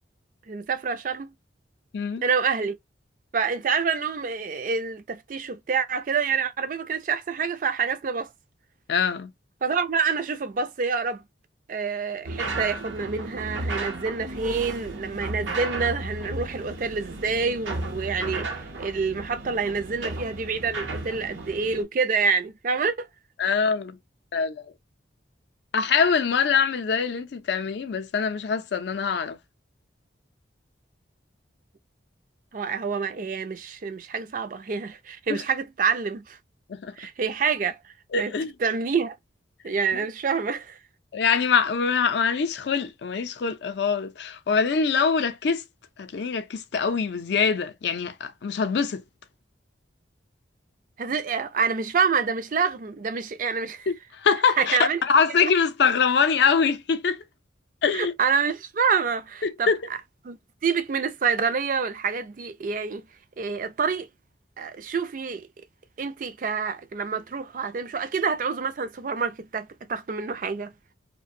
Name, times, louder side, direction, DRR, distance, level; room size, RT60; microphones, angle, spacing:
voice 1, 0.5-1.3 2.2-2.8 3.3-8.3 9.6-11.2 11.7-23.1 32.5-36.4 37.0-38.3 38.6-39.2 39.6-40.8 51.0-53.9 54.6-55.0 55.4-55.5 57.9-59.7 60.2-60.4 60.6-63.0 63.4-64.1 64.6-65.5 66.0-70.7, right 5 dB, 45° right, 0.4 m, -27 dB
voice 2, 8.9-9.3 23.4-24.0 24.3-24.7 25.7-29.4 35.3-35.4 36.7-37.0 38.1-38.5 39.9-40.0 41.1-45.6 46.0-49.0 53.9-57.2 57.8-58.1 59.4-59.8, left 5 dB, 65° left, 0.4 m, -24 dB
sound 1, 12.2-21.8, right 2 dB, 90° right, 0.7 m, -34 dB
2.5 x 2.1 x 2.5 m
head